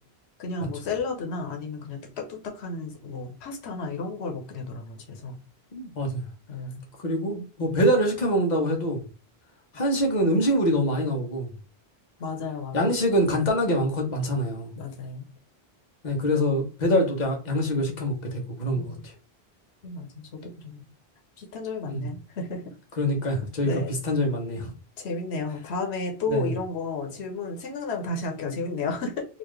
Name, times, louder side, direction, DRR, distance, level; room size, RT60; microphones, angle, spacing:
voice 1, 0.4-5.4 6.5-6.9 12.2-12.8 14.8-15.3 18.7-19.1 19.8-20.9 21.4-22.6 23.6-23.9 25.0-29.3, left 3 dB, 90° left, 2 dB, 1.1 m, -33 dB
voice 2, 5.7-6.2 7.0-9.0 9.7-11.5 12.7-14.7 16.0-19.0 21.9-22.1 23.0-24.7 26.3-26.5, equal, 45° left, 1 dB, 1.2 m, -25 dB
4.1 x 2.5 x 3.1 m, 0.34 s
omnidirectional pair, 1.1 m